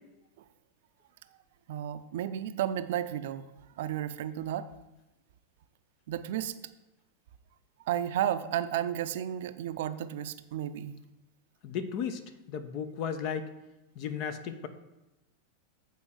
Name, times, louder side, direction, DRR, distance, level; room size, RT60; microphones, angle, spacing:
voice 1, 1.7-3.5 3.8-4.7 6.1-6.5 7.9-11.0, right 11 dB, 65° right, 12 dB, 0.5 m, -32 dB
voice 2, 11.6-12.2 12.5-13.5 14.0-14.7, left 7 dB, 50° left, 10 dB, 0.8 m, -34 dB
8.3 x 4.4 x 6.4 m, 0.97 s
hypercardioid pair, 95°, 0 cm